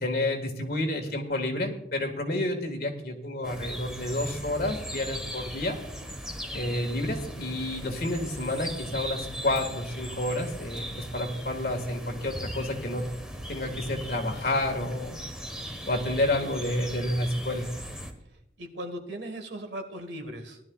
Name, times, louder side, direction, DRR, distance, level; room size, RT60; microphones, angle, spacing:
voice 1, 0.0-5.8 6.5-13.0 13.5-15.2 15.9-17.7, left 1 dB, 55° left, 4 dB, 1.7 m, -30 dB
sound 1, 3.4-18.1, equal, 5° right, 1.2 m, -39 dB
voice 2, 18.6-20.6, right 1 dB, 70° right, 6 dB, 1.6 m, -38 dB
18.5 x 11.5 x 2.4 m, 0.86 s
head